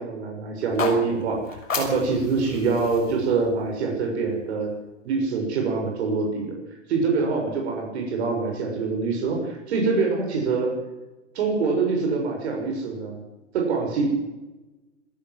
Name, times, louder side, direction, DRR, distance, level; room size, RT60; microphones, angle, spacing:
voice 1, 0.0-4.7 5.0-6.6 6.9-10.7 11.3-13.2 13.5-14.1, right 4 dB, 55° right, 1 dB, 6.6 m, -25 dB
sound 1, 0.6-4.7, left 4 dB, 80° left, 6.2 m, -34 dB
26.5 x 14.0 x 7.6 m, 1.1 s
hypercardioid pair, 115°, 38 cm